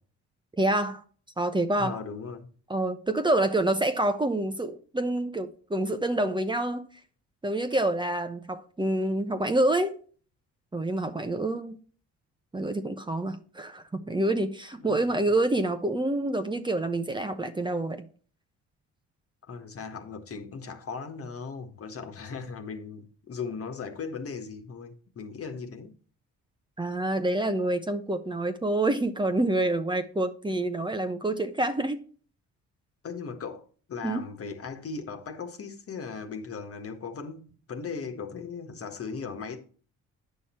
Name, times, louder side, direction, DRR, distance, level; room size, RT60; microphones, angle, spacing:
voice 1, 0.6-1.0 1.4-2.0 2.7-6.9 7.4-9.9 10.7-11.8 12.5-18.1 26.8-32.0 34.0-34.2, right 1 dB, 15° right, 0.9 m, -27 dB
voice 2, 1.8-2.5 14.8-15.2 19.5-26.0 33.0-33.6 33.9-39.6, left 5 dB, 50° left, 1.6 m, -38 dB
9.3 x 6.2 x 4.3 m
cardioid pair, 90°, 30 cm